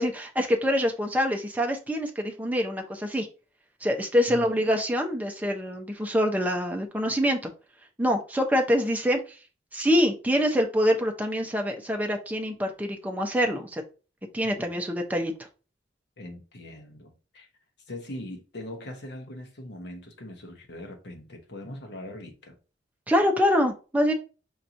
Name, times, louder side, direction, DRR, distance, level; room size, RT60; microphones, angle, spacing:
voice 1, 0.0-3.3 3.8-7.5 8.0-9.2 9.7-13.8 14.3-15.3 23.1-24.1, equal, 10° right, 0.6 m, -25 dB
voice 2, 16.2-17.5 17.9-22.6, left 1 dB, 65° left, 1.0 m, -41 dB
5.5 x 2.9 x 2.6 m
head